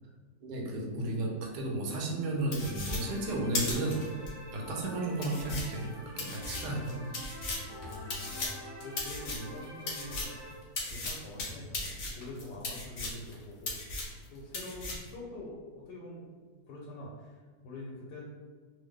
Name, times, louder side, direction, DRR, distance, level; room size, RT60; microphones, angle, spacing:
voice 1, 0.4-4.0 4.5-5.9 6.2-7.0, right 2 dB, 80° right, -1 dB, 1.2 m, -33 dB
sound 1, 2.5-4.3 4.8-4.9 5.2-10.4 10.8-13.3 13.6-14.3 14.5-15.1, left 2 dB, 65° left, 0.5 m, -37 dB
sound 2, 2.6-10.6, equal, 25° right, 0.6 m, -47 dB
voice 2, 7.8-8.5 8.8-10.6 10.9-13.8 14.3-18.2, left 1 dB, 85° left, -4 dB, 1.2 m, -45 dB
3.0 x 2.0 x 3.5 m, 1.5 s
omnidirectional pair, 1.8 m